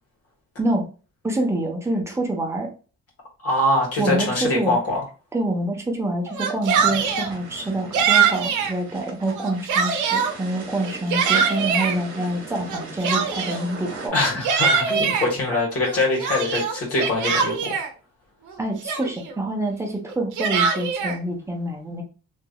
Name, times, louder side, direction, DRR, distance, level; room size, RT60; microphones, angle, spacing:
voice 1, 1.2-2.7 4.0-4.8 5.3-14.1 18.6-22.0, right 1 dB, 10° right, 1 dB, 0.9 m, -26 dB
voice 2, 3.4-5.0 14.1-17.7, left 2 dB, 50° left, -3 dB, 1.6 m, -23 dB
Yell, 6.3-7.3 7.9-8.7 9.3-10.3 10.8-12.0 12.7-13.7 14.2-15.3 15.8-17.9 18.5-18.6 18.9-19.3 20.1-21.2, right 6 dB, 80° right, 0.7 m, -22 dB
sound 1, 6.7-14.1, right 3 dB, 55° right, 1.3 m, -39 dB
3.0 x 2.6 x 2.3 m, 0.35 s
cardioid pair, 90°, 30 cm